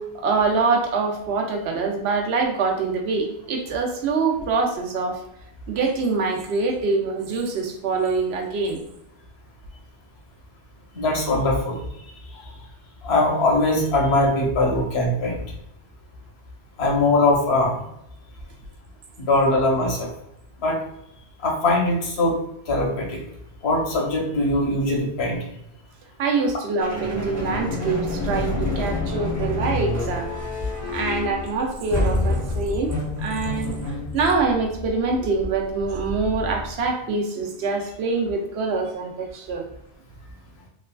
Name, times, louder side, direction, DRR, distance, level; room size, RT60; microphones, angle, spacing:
voice 1, 0.0-5.2 5.7-8.8 26.2-30.3 30.9-32.9 33.2-39.6, right 4 dB, 75° right, 3 dB, 0.8 m, -24 dB
voice 2, 10.9-11.8 13.0-15.4 16.8-17.8 19.2-20.1 20.6-20.8 21.4-22.4 22.7-23.2 23.6-25.4 30.8-30.9, left 2 dB, 75° left, 0 dB, 1.0 m, -21 dB
sound 1, 26.8-36.9, left 2 dB, 15° left, 0.7 m, -28 dB
3.1 x 2.3 x 2.2 m, 0.80 s
omnidirectional pair, 1.1 m